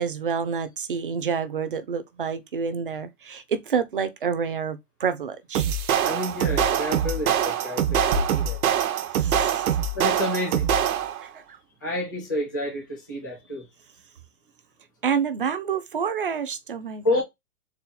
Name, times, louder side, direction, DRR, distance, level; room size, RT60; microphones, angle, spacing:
voice 1, 0.0-5.7 9.1-9.7 11.2-11.6 15.0-17.2, right 6 dB, 40° right, 0.4 m, -28 dB
sound 1, 5.5-11.3, right 8 dB, 70° right, 0.7 m, -24 dB
voice 2, 6.0-8.6 9.9-10.7 11.8-13.7 17.0-17.2, left 1 dB, 15° left, 0.5 m, -29 dB
4.2 x 2.2 x 3.8 m
hypercardioid pair, 175°, 44 cm